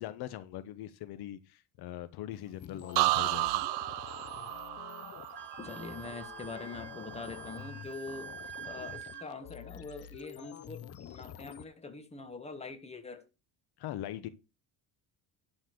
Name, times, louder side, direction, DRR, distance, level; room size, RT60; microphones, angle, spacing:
voice 1, 0.0-3.7 4.1-4.3 13.8-14.3, left 13 dB, 65° left, 1.0 m, -41 dB
sound 1, 2.6-11.6, left 10 dB, 35° left, 0.7 m, -48 dB
sound 2, 3.0-6.8 7.1-7.6, right 19 dB, 70° right, 0.6 m, -33 dB
Wind instrument woodwind instrument, 5.3-9.3, right 8 dB, 25° right, 1.6 m, -47 dB
voice 2, 5.6-8.3 8.6-13.2, left 3 dB, 15° left, 1.5 m, -44 dB
11.5 x 4.3 x 6.7 m
cardioid pair, 140°, 41 cm